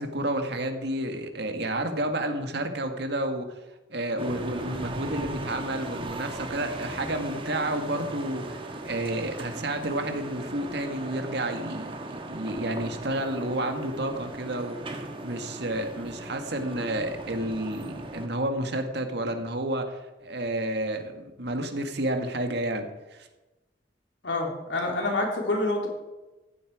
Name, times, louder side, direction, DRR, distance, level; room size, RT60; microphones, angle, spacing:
voice 1, 0.0-3.5 3.9-14.9 15.2-23.3, right 1 dB, 65° right, 6 dB, 1.9 m, -30 dB
sound 1, 4.2-18.3, right 2 dB, 30° right, 1.5 m, -38 dB
voice 2, 24.2-25.9, left 2 dB, 85° left, 0 dB, 3.7 m, -27 dB
15.0 x 12.0 x 5.0 m, 1.1 s
head